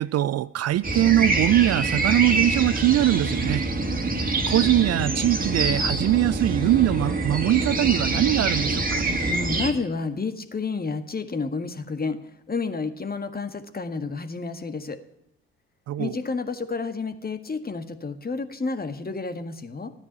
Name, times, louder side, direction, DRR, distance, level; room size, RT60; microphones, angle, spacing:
voice 1, 0.0-3.6 4.5-9.0 15.9-16.2, right 14 dB, 50° right, 0.5 m, -22 dB
sound 1, 0.8-9.7, right 2 dB, 25° right, 2.4 m, -25 dB
voice 2, 9.3-12.2 12.5-15.0 16.0-19.9, left 4 dB, 25° left, 1.7 m, -30 dB
14.0 x 9.6 x 8.7 m
hypercardioid pair, 50°, 33 cm